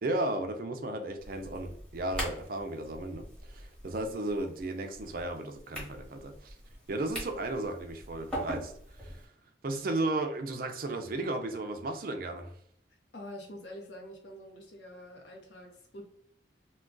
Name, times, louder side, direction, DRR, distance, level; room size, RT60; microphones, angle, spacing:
voice 1, 0.0-6.6 6.9-8.7 9.0-9.3 9.6-12.5, right 2 dB, 50° right, 5 dB, 0.4 m, -34 dB
sound 1, 1.2-9.3, equal, 5° left, 1.1 m, -42 dB
voice 2, 13.1-16.1, left 1 dB, 70° left, 1 dB, 0.8 m, -46 dB
2.3 x 2.2 x 3.7 m, 0.65 s
head